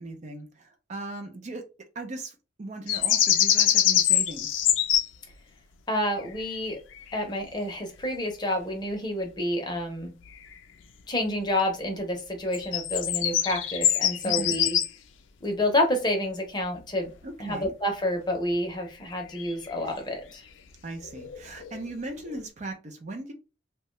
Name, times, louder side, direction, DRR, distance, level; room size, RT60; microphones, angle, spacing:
voice 1, 0.0-1.6 2.0-4.6 14.2-14.5 17.2-17.7 20.8-23.3, right 2 dB, 40° right, 0.4 m, -38 dB
sound 1, 2.9-5.1 6.2-6.6 6.9-7.2 10.3-10.5 12.5-14.9 19.1-19.7 21.0-21.9 22.3-22.5, left 11 dB, 80° left, 0.4 m, -24 dB
voice 2, 5.9-6.8 7.1-10.1 11.1-14.8 15.4-17.1 17.4-20.4, left 1 dB, 25° left, 0.7 m, -29 dB
2.7 x 2.2 x 3.0 m
head